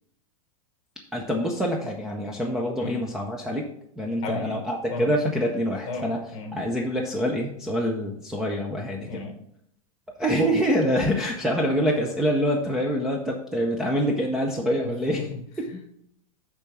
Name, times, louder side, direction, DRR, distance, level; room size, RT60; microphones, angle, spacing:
voice 1, 1.1-3.7 4.0-6.2 6.5-9.2 10.2-15.3 15.6-15.7, equal, 5° right, -1 dB, 0.5 m, -25 dB
voice 2, 4.2-4.6 4.9-5.1 5.9-6.5 9.1-9.4 14.8-15.9, left 4 dB, 30° left, 5 dB, 1.3 m, -35 dB
8.6 x 3.6 x 5.9 m, 0.74 s
supercardioid pair, 160°, 18 cm